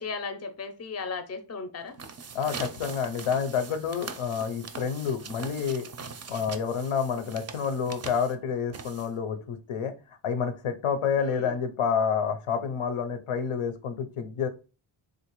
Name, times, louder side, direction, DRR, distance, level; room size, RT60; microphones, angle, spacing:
voice 1, 0.0-1.9 11.2-11.6, left 4 dB, 30° left, 8 dB, 0.5 m, -36 dB
sound 1, 1.8-9.4, right 5 dB, 35° right, 0.4 m, -42 dB
voice 2, 2.3-5.8 6.3-9.9 10.2-14.5, left 6 dB, 90° left, 8 dB, 0.7 m, -29 dB
3.7 x 2.5 x 2.9 m, 0.33 s
wide cardioid pair, 105°, 50 cm